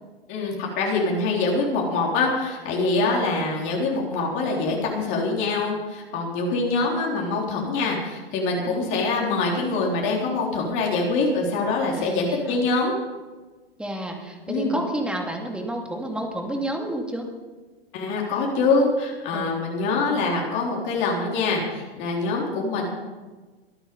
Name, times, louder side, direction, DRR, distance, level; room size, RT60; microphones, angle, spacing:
voice 1, 0.3-12.9 14.5-14.8 17.9-22.8, left 3 dB, 40° left, -2 dB, 3.9 m, -24 dB
voice 2, 3.0-3.5 8.6-9.3 12.0-12.6 13.8-17.3 19.3-19.6, right 1 dB, 5° right, 2 dB, 2.5 m, -31 dB
23.5 x 9.1 x 5.4 m, 1.3 s
figure-of-eight pair, 105°, 31 cm